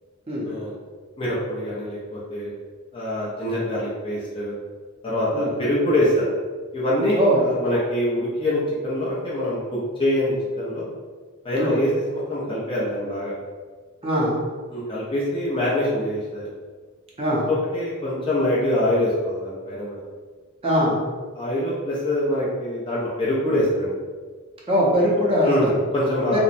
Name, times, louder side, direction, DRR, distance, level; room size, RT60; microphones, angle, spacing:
voice 1, 1.2-2.5 2.9-4.5 5.0-6.2 6.7-10.9 11.4-13.3 14.7-16.5 17.5-20.0 21.3-23.9 25.4-26.4, left 1 dB, 25° left, -7 dB, 0.5 m, -24 dB
voice 2, 7.1-7.4 11.6-11.8 14.0-14.4 17.2-17.5 20.6-21.0 24.7-25.7 26.3-26.4, equal, 25° right, -4 dB, 0.5 m, -21 dB
2.8 x 2.1 x 2.5 m, 1.5 s
head